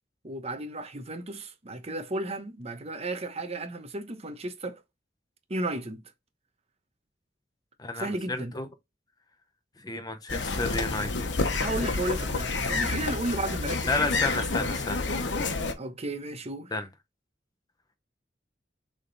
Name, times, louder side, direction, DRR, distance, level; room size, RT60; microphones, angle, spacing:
voice 1, 0.2-4.8 5.5-6.0 8.0-8.5 11.6-14.7 15.8-16.7, right 1 dB, 35° right, 0.9 m, -34 dB
voice 2, 7.8-8.7 9.8-11.1 13.9-15.0 16.7-16.9, left 3 dB, 20° left, 0.7 m, -31 dB
sound 1, 10.3-15.7, left 3 dB, 80° left, 1.1 m, -29 dB
6.8 x 3.7 x 4.0 m
head